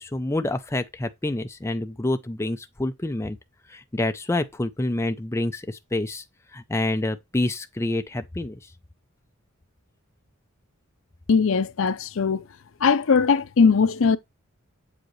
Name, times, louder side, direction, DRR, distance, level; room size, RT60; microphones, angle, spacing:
voice 1, 0.0-3.4 3.7-6.2 6.5-8.6, left 2 dB, 15° left, 0.4 m, -27 dB
voice 2, 11.3-12.4 12.8-14.2, left 5 dB, 65° left, 0.5 m, -20 dB
7.6 x 5.0 x 3.1 m
head